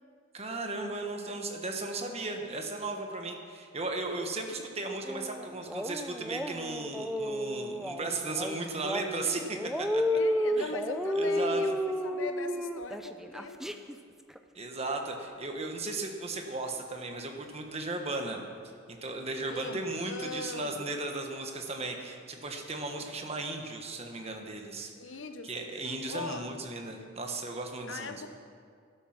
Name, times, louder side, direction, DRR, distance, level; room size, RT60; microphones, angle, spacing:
voice 1, 0.3-10.0 10.6-10.7 11.1-11.6 14.5-18.4 19.0-24.9 25.4-28.2, right 2 dB, 30° right, 3 dB, 1.3 m, -36 dB
sound 1, 5.1-14.0 14.4-14.5, equal, ahead, 0.4 m, -32 dB
voice 2, 5.3-5.8 10.1-13.9 19.5-20.9 23.0-23.2 24.9-26.5 27.9-28.3, left 3 dB, 75° left, 8 dB, 0.9 m, -41 dB
12.5 x 11.5 x 6.0 m, 2.2 s
head